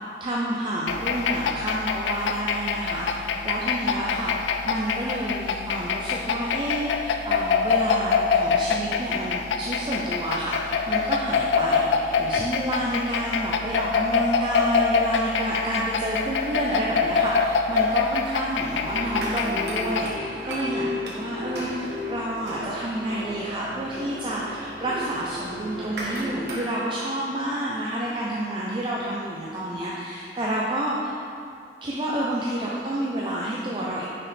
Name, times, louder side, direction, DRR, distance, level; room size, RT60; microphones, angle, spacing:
voice 1, 0.2-31.2 31.8-34.1, right 1 dB, 30° right, -5 dB, 0.5 m, -29 dB
sound 1, 0.9-20.2, left 5 dB, 80° left, 0.3 m, -25 dB
sound 2, 18.8-26.6, equal, 65° right, 1.1 m, -34 dB
5.8 x 5.0 x 3.2 m, 2.4 s
head